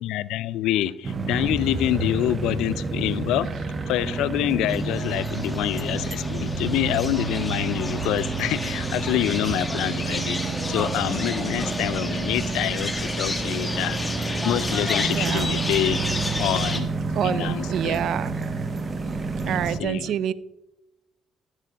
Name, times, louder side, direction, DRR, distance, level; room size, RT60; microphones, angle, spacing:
voice 1, 0.0-3.5 3.9-10.4 10.7-16.0 16.4-16.9 17.2-18.0 19.7-20.2, left 14 dB, 70° left, 0.3 m, -26 dB
sound 1, 1.0-19.8, right 4 dB, 40° right, 1.0 m, -29 dB
sound 2, 4.7-16.8, left 2 dB, 20° left, 1.4 m, -32 dB
voice 2, 15.1-15.5 17.1-18.4 19.4-20.3, right 10 dB, 65° right, 0.3 m, -27 dB
13.0 x 7.5 x 2.9 m
hypercardioid pair, 50°, 0 cm